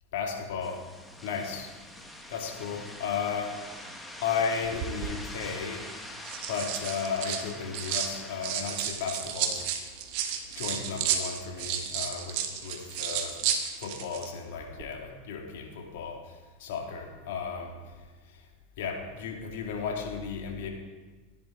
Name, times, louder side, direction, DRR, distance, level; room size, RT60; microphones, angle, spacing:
voice 1, 0.1-0.8 1.2-1.7 2.3-3.6 4.2-5.9 6.5-9.6 10.5-13.4 13.8-17.8 18.3-18.4 18.8-20.7, left 6 dB, 65° left, 2 dB, 2.4 m, -34 dB
sound 1, 0.6-9.7, left 1 dB, 5° left, 1.6 m, -45 dB
sound 2, 4.6-5.1 6.0-8.1 8.4-14.3 14.6-14.8, right 8 dB, 60° right, 1.4 m, -32 dB
14.5 x 10.5 x 3.8 m, 1.3 s
hypercardioid pair, 95°, 0 cm